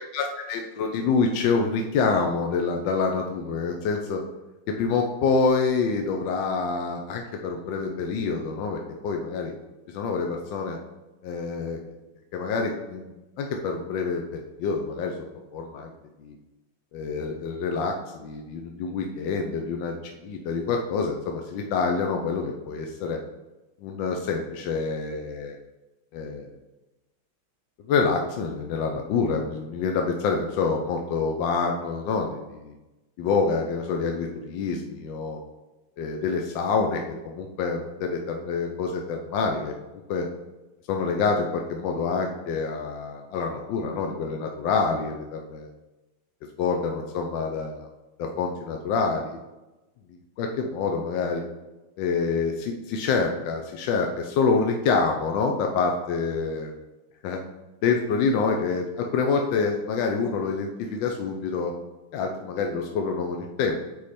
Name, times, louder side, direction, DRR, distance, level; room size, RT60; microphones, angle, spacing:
voice 1, 0.1-4.2 4.7-9.5 9.9-10.8 11.2-11.8 12.3-15.1 15.5-15.9 16.2-16.3 16.9-23.2 23.8-25.6 26.1-26.5 27.9-32.7 33.2-35.4 36.0-39.7 40.1-40.3 40.9-45.7 46.6-47.9 48.2-49.4 50.4-51.4 52.0-56.7 57.2-57.4 57.8-61.7 62.1-63.8, left 4 dB, 70° left, 2 dB, 1.2 m, -27 dB
8.4 x 3.2 x 4.2 m, 1.0 s
omnidirectional pair, 2.3 m